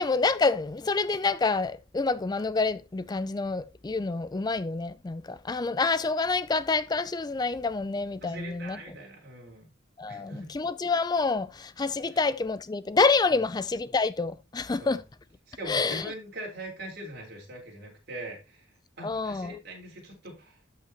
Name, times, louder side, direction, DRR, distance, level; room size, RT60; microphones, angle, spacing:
voice 1, 0.0-8.8 10.0-15.0 15.7-16.1 19.0-19.5, left 4 dB, 20° left, 0.3 m, -27 dB
voice 2, 8.2-9.7 10.1-10.5 12.1-12.2 13.3-13.5 14.8-15.0 15.5-20.6, right 1 dB, 55° right, 4.2 m, -42 dB
12.5 x 5.7 x 2.9 m
head